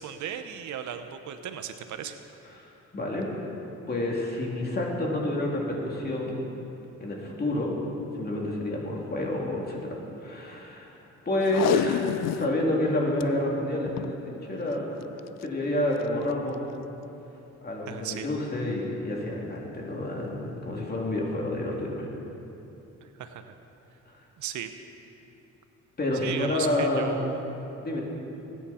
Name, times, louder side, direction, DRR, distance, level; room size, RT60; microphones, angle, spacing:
voice 1, 0.0-2.2 17.9-18.3 23.0-23.5 24.4-24.7 26.2-27.4, right 9 dB, 75° right, 8 dB, 0.9 m, -36 dB
voice 2, 2.6-3.3 3.9-6.4 7.0-9.9 10.2-11.0 11.2-14.9 15.1-16.6 17.6-22.1 26.0-27.1 27.8-28.0, left 1 dB, 30° left, -2 dB, 2.9 m, -29 dB
Packing tape duct tape, 11.4-12.6 12.9-13.0 13.2-13.3 13.9-14.2 15.2-15.4 16.0-16.1, left 12 dB, 60° left, 0.5 m, -27 dB
21.0 x 9.6 x 4.3 m, 2.9 s
cardioid pair, 90°, 30 cm